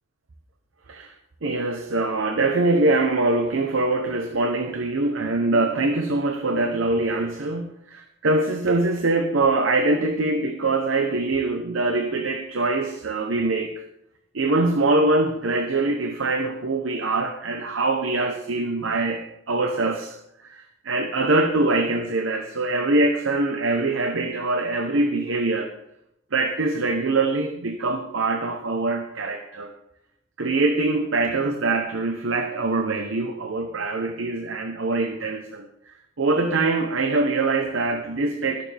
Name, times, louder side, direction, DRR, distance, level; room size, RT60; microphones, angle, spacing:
voice 1, 1.4-13.8 14.3-25.7 26.3-29.7 30.4-38.6, right 2 dB, 90° right, 6 dB, 0.9 m, -23 dB
20.5 x 6.9 x 3.4 m, 0.80 s
head